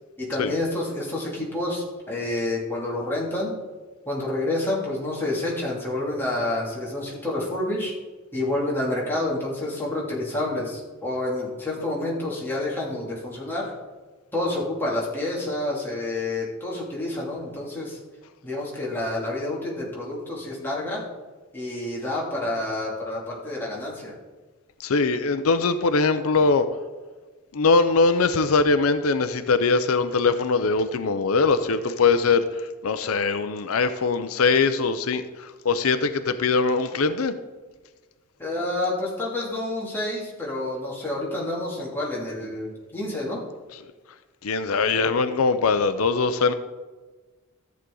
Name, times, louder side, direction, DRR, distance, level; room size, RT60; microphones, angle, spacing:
voice 1, 0.2-3.5 4.1-7.9 8.3-13.7 14.3-18.0 18.4-21.0 21.5-24.1 38.4-43.4, left 2 dB, 10° left, -5 dB, 2.7 m, -28 dB
voice 2, 24.8-26.7 27.5-32.4 32.8-37.3 43.7-43.8 44.4-46.5, left 4 dB, 85° left, 11 dB, 0.6 m, -22 dB
14.0 x 8.2 x 3.9 m, 1.3 s
head